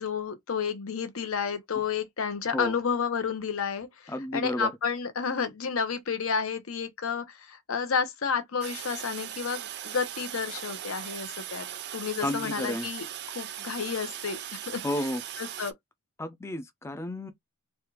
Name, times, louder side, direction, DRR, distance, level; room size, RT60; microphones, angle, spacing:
voice 1, 0.0-11.7 11.9-13.1 13.3-14.8 15.4-15.7, left 6 dB, 75° left, 0.8 m, -31 dB
voice 2, 4.1-4.7 12.2-12.9 14.8-15.2 16.2-17.3, left 1 dB, 10° left, 0.3 m, -32 dB
Toilet flush, 8.6-15.7, right 11 dB, 50° right, 0.4 m, -39 dB
3.2 x 2.3 x 3.0 m
head